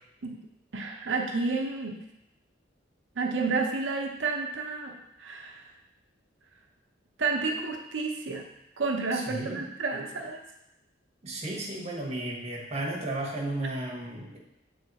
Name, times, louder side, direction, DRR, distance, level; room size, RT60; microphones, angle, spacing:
voice 1, 0.7-2.0 3.2-4.9 5.2-5.6 7.2-8.4 8.8-10.4, right 4 dB, 75° right, 2 dB, 0.7 m, -30 dB
voice 2, 9.1-9.7 11.2-14.4, right 1 dB, 35° right, -2 dB, 1.1 m, -34 dB
7.3 x 3.3 x 4.0 m, 0.85 s
head